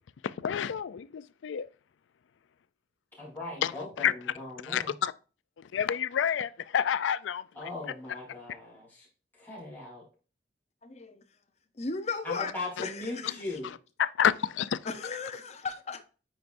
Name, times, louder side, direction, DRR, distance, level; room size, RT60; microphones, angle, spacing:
voice 1, 0.2-1.7 3.6-3.7 4.0-4.1 4.6-5.1 5.7-7.4 13.2-13.3 14.0-14.8, left 8 dB, 85° left, 0.4 m, -28 dB
voice 2, 3.1-5.0 7.5-9.1 9.3-10.0 12.2-13.7, left 2 dB, 10° left, 3.3 m, -39 dB
voice 3, 10.8-11.2 11.8-12.5 12.8-13.3 14.8-16.0, left 4 dB, 35° left, 0.7 m, -36 dB
9.2 x 4.7 x 2.6 m
head